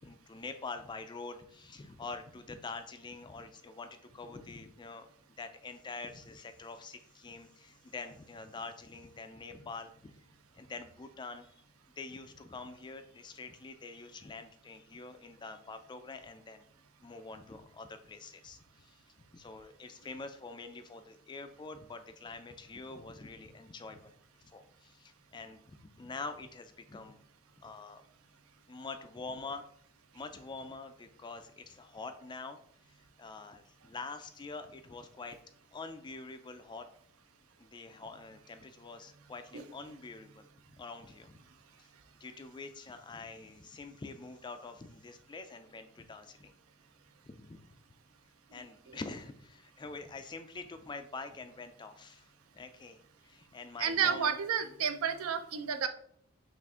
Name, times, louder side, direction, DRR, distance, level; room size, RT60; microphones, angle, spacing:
voice 1, 0.0-5.1 5.4-10.1 10.5-11.6 12.0-16.6 17.0-19.0 19.3-24.1 24.4-27.2 27.6-28.0 28.7-29.6 30.1-32.6 32.9-35.4 35.7-36.9 37.6-40.5 40.8-41.4 41.8-41.9 42.2-46.5 47.2-47.7 48.5-54.4, left 3 dB, 20° left, 8 dB, 0.3 m, -46 dB
voice 2, 53.8-55.9, right 7 dB, 65° right, 8 dB, 0.5 m, -31 dB
5.9 x 2.5 x 3.6 m, 0.64 s
head